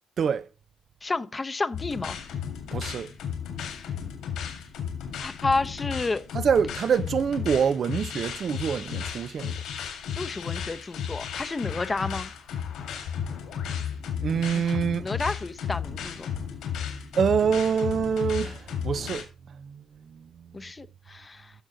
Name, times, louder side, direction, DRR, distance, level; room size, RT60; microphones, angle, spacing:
voice 1, 1.0-2.2 5.2-6.2 10.2-12.3 15.0-16.3 20.5-21.5, left 3 dB, 25° left, 0.8 m, -30 dB
sound 1, 1.7-19.2, left 8 dB, 85° left, 4.0 m, -34 dB
voice 2, 2.7-3.1 6.3-9.6 14.2-15.1 16.9-20.6, right 7 dB, 55° right, 0.6 m, -26 dB
14.0 x 6.4 x 3.9 m
cardioid pair, 90°, 0 cm